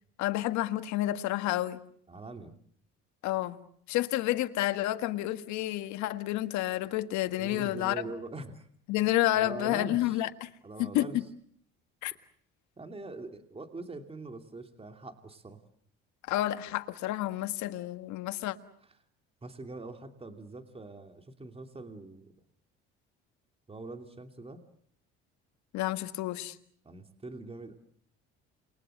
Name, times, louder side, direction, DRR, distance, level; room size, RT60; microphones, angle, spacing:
voice 1, 0.2-1.8 3.2-3.6 3.9-7.9 8.9-10.5 10.8-11.1 12.0-12.1 16.3-18.5 25.7-26.6, left 15 dB, 75° left, 1.7 m, -30 dB
voice 2, 2.1-2.6 7.4-8.7 9.3-10.2 10.6-11.2 12.8-15.6 19.4-22.3 23.7-24.6 26.8-27.8, right 2 dB, 20° right, 2.8 m, -43 dB
28.5 x 22.5 x 7.8 m
supercardioid pair, 85°, 29 cm